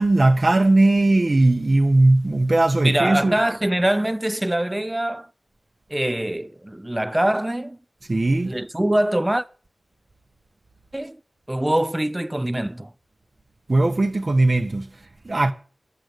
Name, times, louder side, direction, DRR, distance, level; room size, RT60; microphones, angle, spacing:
voice 1, 0.0-3.4 8.1-8.6 13.7-15.5, right 2 dB, 45° right, 0.9 m, -18 dB
voice 2, 2.8-5.3 5.9-7.8 8.5-9.5 10.9-11.2 11.5-12.9, right 1 dB, 15° right, 0.6 m, -23 dB
11.5 x 7.8 x 8.1 m
wide cardioid pair, 90°, 0 cm